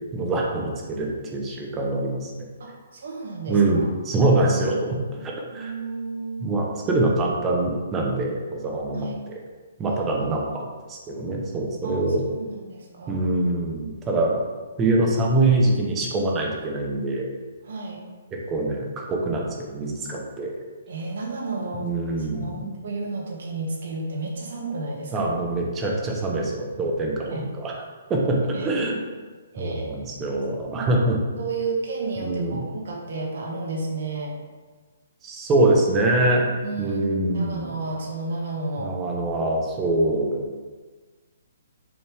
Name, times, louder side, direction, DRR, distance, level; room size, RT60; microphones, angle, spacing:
voice 1, 0.1-2.5 3.5-5.7 6.4-9.3 9.8-12.2 13.1-14.4 14.8-17.3 18.5-20.5 21.8-22.7 25.1-27.7 28.1-29.0 29.6-31.2 32.2-32.6 35.2-36.4 36.8-37.7 38.8-40.4, right 2 dB, 15° right, -1 dB, 0.9 m, -24 dB
voice 2, 2.6-3.9 4.6-4.9 5.5-6.5 8.9-9.2 9.8-10.5 11.8-13.2 17.6-18.0 20.9-21.9 22.2-25.3 27.3-27.5 28.5-28.9 29.5-30.0 30.6-30.9 31.4-34.4 36.5-38.9, right 3 dB, 55° right, -1 dB, 1.7 m, -32 dB
7.1 x 5.2 x 3.4 m, 1.4 s
hypercardioid pair, 170°, 0 cm